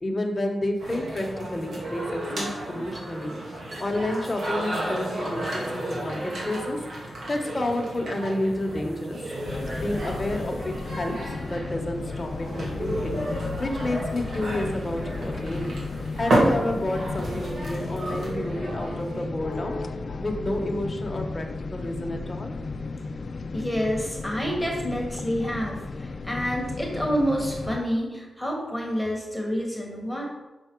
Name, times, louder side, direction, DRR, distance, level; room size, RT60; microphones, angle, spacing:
voice 1, 0.0-3.4 3.8-9.2 9.7-15.7 16.2-19.8 20.2-22.5, left 1 dB, 25° left, 2 dB, 1.2 m, -30 dB
sound 1, 0.8-19.2, right 1 dB, 70° right, 2.1 m, -32 dB
sound 2, 9.4-27.8, left 3 dB, 55° left, 0.4 m, -34 dB
voice 2, 23.5-30.3, equal, ahead, -1 dB, 1.6 m, -28 dB
6.2 x 5.9 x 4.6 m, 1.2 s
wide cardioid pair, 90°, 0 cm